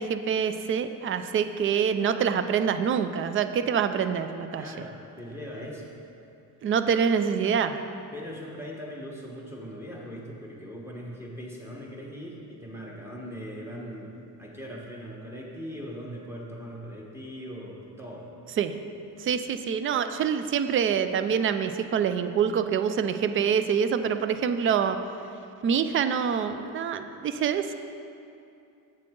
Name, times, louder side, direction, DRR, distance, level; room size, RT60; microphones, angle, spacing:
voice 1, 0.0-4.6 6.6-7.8 18.6-18.8 19.2-25.0 25.6-27.7, right 7 dB, 35° right, 10 dB, 0.4 m, -26 dB
voice 2, 4.6-6.0 8.1-18.3, equal, 5° right, -3 dB, 1.4 m, -40 dB
7.7 x 7.6 x 3.7 m, 2.6 s
cardioid pair, 115°, 37 cm